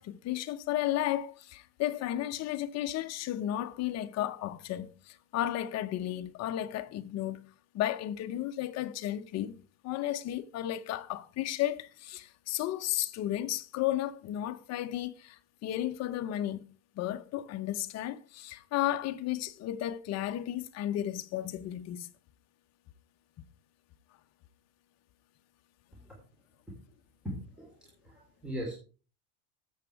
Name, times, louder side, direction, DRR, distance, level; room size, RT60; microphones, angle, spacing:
voice 1, 0.0-7.5 7.7-9.5 9.8-16.6 16.9-22.1, left 13 dB, 35° left, 0.9 m, -33 dB
voice 2, 27.2-28.7, equal, ahead, 3.3 m, -40 dB
13.5 x 8.0 x 4.7 m
supercardioid pair, 150°, 44 cm